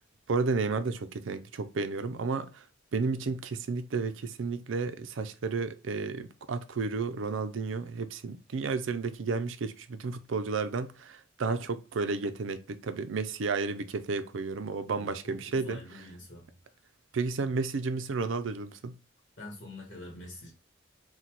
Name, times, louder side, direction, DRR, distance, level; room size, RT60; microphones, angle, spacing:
voice 1, 0.3-2.6 2.9-16.1 17.1-19.0, right 4 dB, 80° right, 0.5 m, -32 dB
voice 2, 14.9-16.4 19.4-20.5, left 2 dB, 40° left, 1.3 m, -45 dB
4.1 x 2.2 x 4.5 m
head